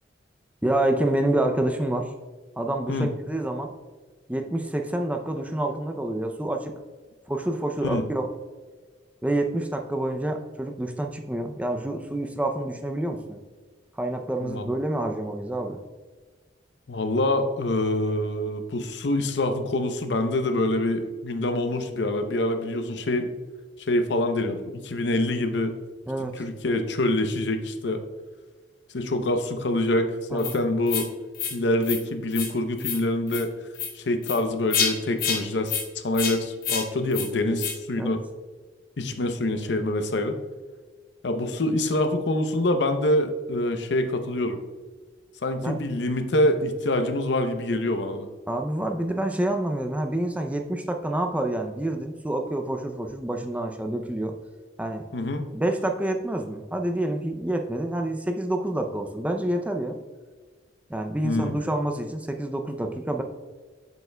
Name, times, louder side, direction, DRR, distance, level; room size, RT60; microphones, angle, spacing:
voice 1, 0.6-2.1 2.6-3.7 4.3-6.7 7.3-8.3 9.2-13.4 13.9-15.8 26.1-26.4 30.3-30.6 38.0-38.2 45.6-45.8 48.5-54.3 54.8-55.0 55.5-60.0 60.9-63.2, right 1 dB, 10° right, 4 dB, 0.4 m, -28 dB
voice 2, 16.9-23.3 23.9-25.8 26.4-28.0 28.9-31.1 31.5-33.5 33.9-35.7 36.0-38.2 39.0-40.4 41.2-44.6 45.4-48.3 55.1-55.4 61.2-61.6, left 1 dB, 70° left, 7 dB, 0.6 m, -25 dB
sound 1, 30.4-30.5 30.9-31.1 31.3-31.5 31.8-32.0 32.3-32.5 32.8-33.0 33.3-33.4 33.7-33.9 34.2-34.4 34.7-34.9 35.2-35.4 35.7-35.8 36.1-36.3 36.6-36.8 37.1-37.3 37.6-37.7, left 7 dB, 50° left, 1.0 m, -27 dB
8.0 x 6.8 x 2.2 m, 1.4 s
head